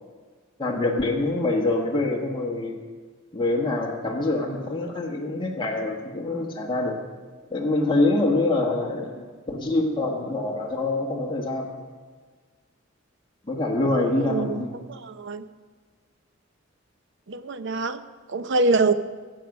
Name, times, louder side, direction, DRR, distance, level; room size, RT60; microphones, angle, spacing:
voice 1, 0.6-2.8 3.3-7.0 7.5-11.7 13.5-14.7, left 2 dB, 25° left, -1 dB, 1.4 m, -25 dB
voice 2, 14.2-15.4 17.3-18.0 18.3-18.9, right 3 dB, 65° right, 12 dB, 0.6 m, -24 dB
15.0 x 7.8 x 6.0 m, 1.5 s
head